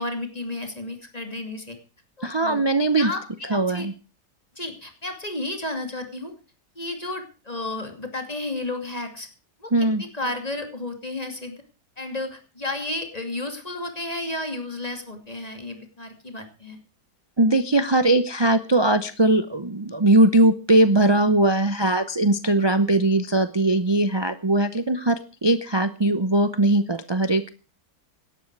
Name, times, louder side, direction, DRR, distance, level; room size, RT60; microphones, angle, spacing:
voice 1, 0.0-1.8 2.2-2.6 3.0-3.9 4.6-6.3 6.8-9.3 9.6-11.6 12.0-16.8, left 2 dB, 25° left, 6 dB, 2.6 m, -32 dB
voice 2, 2.2-3.1 3.5-3.9 9.7-10.0 17.4-27.5, right 1 dB, 30° right, 12 dB, 0.4 m, -20 dB
17.5 x 12.5 x 4.7 m, 0.34 s
omnidirectional pair, 1.8 m